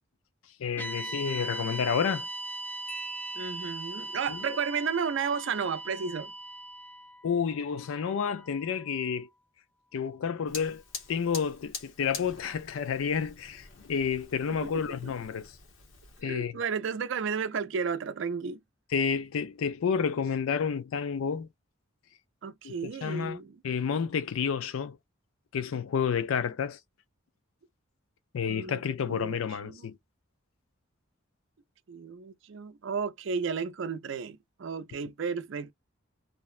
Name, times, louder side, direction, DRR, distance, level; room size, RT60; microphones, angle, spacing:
voice 1, 0.6-2.3 4.3-4.4 7.2-9.3 9.9-10.8 11.1-15.5 16.2-16.6 18.9-21.5 22.6-23.4 23.6-25.0 25.5-26.8 28.3-30.0, left 6 dB, 85° left, 0.4 m, -30 dB
sound 1, 0.8-9.1, right 2 dB, 10° left, 0.3 m, -40 dB
Marimba xylophone, 2.9-4.3, right 3 dB, 35° left, 0.7 m, -46 dB
voice 2, 3.4-6.3 14.5-15.1 16.2-18.6 22.4-23.6 28.5-28.8 29.1-29.9 31.9-35.7, right 6 dB, 65° right, 0.4 m, -33 dB
Fire, 10.5-16.2, left 4 dB, 70° left, 0.8 m, -45 dB
2.5 x 2.1 x 2.4 m
head